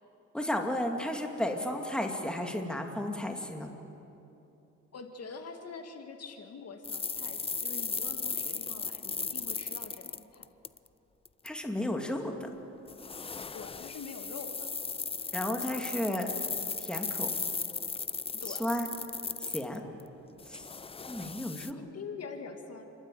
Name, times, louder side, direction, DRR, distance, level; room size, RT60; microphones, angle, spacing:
voice 1, 0.3-3.7 11.4-12.5 15.3-16.3 16.8-17.3 18.5-18.9 19.4-19.8 20.5-20.7 21.1-21.8, left 1 dB, 5° left, 3 dB, 2.3 m, -33 dB
voice 2, 4.9-10.5 13.5-14.7 18.3-18.6 21.7-22.8, left 5 dB, 55° left, 5 dB, 2.1 m, -45 dB
sound 1, 6.8-10.9 11.3-11.5 12.9-20.0 20.4-21.7, left 5 dB, 20° left, 0.5 m, -36 dB
29.0 x 12.5 x 9.2 m, 2.9 s
cardioid pair, 90°, 30 cm